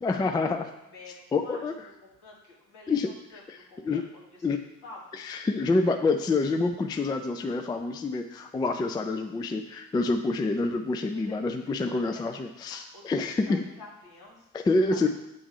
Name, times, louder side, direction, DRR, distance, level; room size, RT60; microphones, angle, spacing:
voice 1, 0.0-0.7 1.3-1.7 2.9-3.1 3.8-4.0 4.4-4.6 5.3-13.6 14.5-15.1, left 3 dB, 10° left, 6 dB, 0.3 m, -27 dB
voice 2, 0.8-5.4 5.9-6.1 11.1-11.3 11.9-12.4 12.7-15.1, left 2 dB, 60° left, -4 dB, 2.0 m, -50 dB
8.1 x 3.5 x 4.8 m, 0.89 s
figure-of-eight pair, 45°, 43 cm